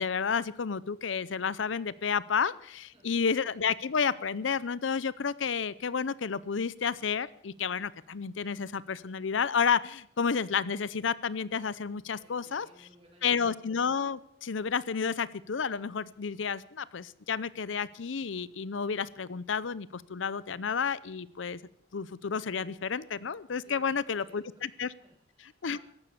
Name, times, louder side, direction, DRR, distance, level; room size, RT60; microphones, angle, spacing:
voice 1, 0.0-12.7 13.2-21.6 21.9-24.9 25.6-25.8, left 6 dB, 85° left, 19 dB, 0.6 m, -31 dB
voice 2, 2.9-3.3 12.2-13.5 23.6-25.8, equal, 30° right, 0 dB, 5.9 m, -60 dB
15.0 x 12.0 x 7.2 m, 0.70 s
head